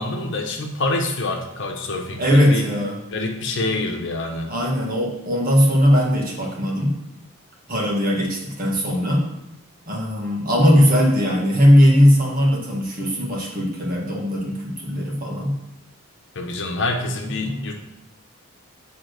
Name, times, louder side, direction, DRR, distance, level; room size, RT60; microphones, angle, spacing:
voice 1, 0.0-2.7 3.1-4.5 16.3-17.8, left 2 dB, 55° left, 2 dB, 1.1 m, -26 dB
voice 2, 2.2-3.0 4.5-7.0 7.7-9.3 9.9-15.6 17.4-17.6, equal, 40° right, -2 dB, 1.8 m, -19 dB
8.7 x 3.7 x 6.4 m, 0.85 s
head